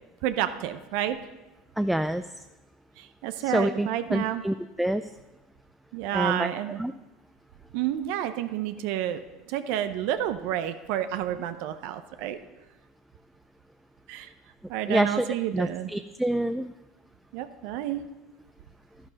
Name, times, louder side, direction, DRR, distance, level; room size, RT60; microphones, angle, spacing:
voice 1, 0.2-1.2 3.0-4.4 5.9-6.8 7.7-9.2 9.5-12.4 14.1-14.3 14.7-15.9 17.3-18.0, right 11 dB, 70° right, 10 dB, 0.7 m, -30 dB
voice 2, 1.8-2.2 3.4-5.1 6.1-6.5 6.8-6.9 14.9-15.2 15.5-16.7, right 1 dB, 5° right, 10 dB, 0.3 m, -27 dB
10.5 x 10.5 x 4.0 m, 1.1 s
supercardioid pair, 95°, 3 cm